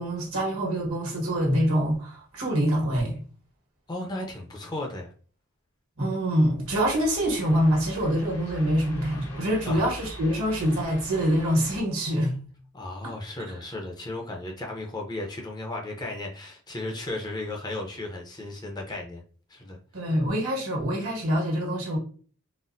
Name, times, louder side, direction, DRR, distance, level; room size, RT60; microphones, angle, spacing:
voice 1, 0.0-3.2 6.0-12.3 19.9-22.0, equal, 70° right, 1.3 m, -25 dB
voice 2, 3.9-5.1 9.7-9.8 12.7-19.2 19.5-19.8, left 2 dB, 20° left, 0.6 m, -35 dB
sound 1, 6.7-11.8, left 1 dB, 75° left, 1.1 m, -42 dB
4.0 x 2.0 x 2.5 m
head